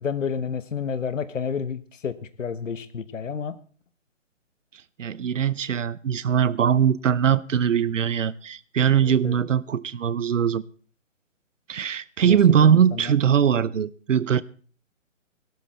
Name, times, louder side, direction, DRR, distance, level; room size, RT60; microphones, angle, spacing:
voice 1, 0.0-3.5 9.1-9.4 12.2-13.1, left 6 dB, 75° left, 1.3 m, -30 dB
voice 2, 5.0-10.6 11.7-14.4, right 8 dB, 75° right, 0.8 m, -21 dB
15.5 x 12.5 x 4.2 m
hypercardioid pair, 165°, 38 cm